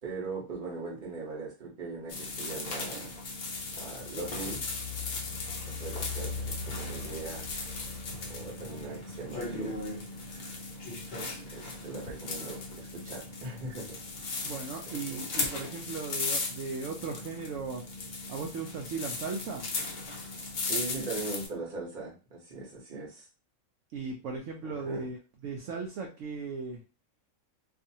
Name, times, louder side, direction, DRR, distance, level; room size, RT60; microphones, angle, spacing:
voice 1, 0.0-3.2 3.7-4.6 5.6-7.5 8.3-9.8 10.4-10.5 11.5-14.0 14.4-14.5 15.1-15.2 20.6-23.3 24.6-25.1, right 3 dB, 40° right, -2 dB, 1.0 m, -40 dB
sound 1, 2.1-21.5, left 3 dB, 70° left, 0.4 m, -37 dB
voice 2, 14.4-17.8 18.3-19.6 23.9-25.2 25.4-26.8, right 4 dB, 70° right, 0 dB, 0.8 m, -37 dB
2.6 x 2.5 x 2.7 m, 0.33 s
omnidirectional pair, 1.5 m